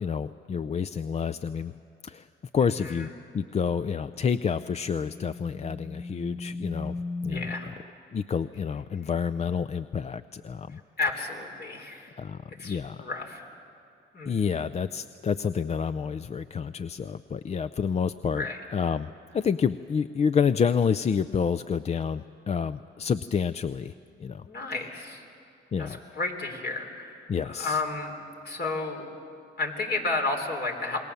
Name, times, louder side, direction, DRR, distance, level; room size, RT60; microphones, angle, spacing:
voice 1, 0.0-1.7 2.0-2.3 2.5-7.0 7.2-7.4 8.1-10.8 12.2-13.0 14.3-18.5 18.7-19.1 19.3-23.9 24.2-24.5 25.7-26.0 27.3-27.8, left 6 dB, 35° left, 11 dB, 0.5 m, -28 dB
sound 1, 4.0-7.8, left 3 dB, 15° left, 1.0 m, -38 dB
voice 2, 7.3-7.7 11.0-12.1 12.6-13.4 14.1-14.6 18.4-18.6 24.5-25.2 25.8-28.2 28.4-29.1 29.6-31.0, left 3 dB, 55° left, 3 dB, 3.6 m, -32 dB
27.0 x 20.5 x 7.0 m, 2.7 s
cardioid pair, 90°, 20 cm